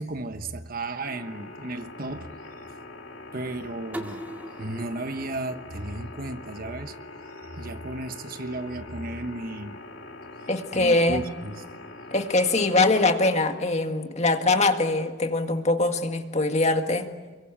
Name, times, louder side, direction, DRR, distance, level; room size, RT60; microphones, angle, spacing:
voice 1, 0.0-2.3 3.3-4.2 4.5-7.0 7.4-9.8 10.7-11.6, right 2 dB, 45° right, 1.2 m, -34 dB
sound 1, 1.0-13.1, left 2 dB, 75° left, 2.6 m, -43 dB
sound 2, 3.9-6.7, equal, 10° right, 2.2 m, -41 dB
voice 2, 10.5-11.3 12.1-17.1, left 2 dB, 35° left, 1.8 m, -23 dB
30.0 x 22.5 x 8.8 m
head